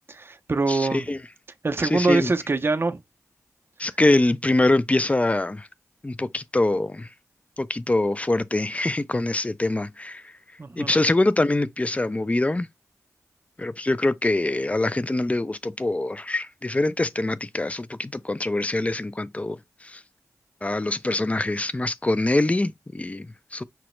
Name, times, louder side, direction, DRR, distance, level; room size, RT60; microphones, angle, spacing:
voice 1, 0.1-1.1 1.6-3.0 10.6-10.9, right 3 dB, 40° right, 0.5 m, -24 dB
voice 2, 0.7-1.2 1.8-2.3 3.8-5.7 6.0-7.1 7.6-10.3 10.8-12.7 13.6-20.0 20.6-23.6, left 2 dB, 25° left, 0.4 m, -24 dB
5.8 x 2.0 x 3.0 m
cardioid pair, 40°, 6 cm